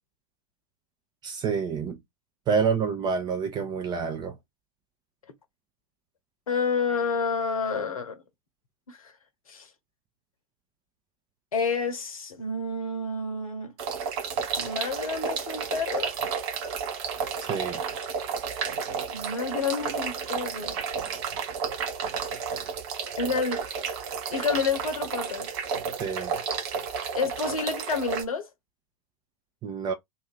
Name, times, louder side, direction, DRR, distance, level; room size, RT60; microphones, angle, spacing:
voice 1, 1.2-2.0 2.5-4.4 17.4-17.8 26.0-26.4 29.6-29.9, right 6 dB, 20° right, 0.5 m, -28 dB
voice 2, 6.5-8.2 8.9-9.1 9.5-9.7 11.5-13.7 14.6-16.1 19.1-20.8 23.2-23.6 24.3-25.5 27.1-28.5, left 5 dB, 70° left, 0.8 m, -29 dB
sound 1, 13.8-28.2, right 6 dB, 45° right, 0.8 m, -32 dB
2.5 x 2.5 x 3.4 m
figure-of-eight pair, 90°, 19 cm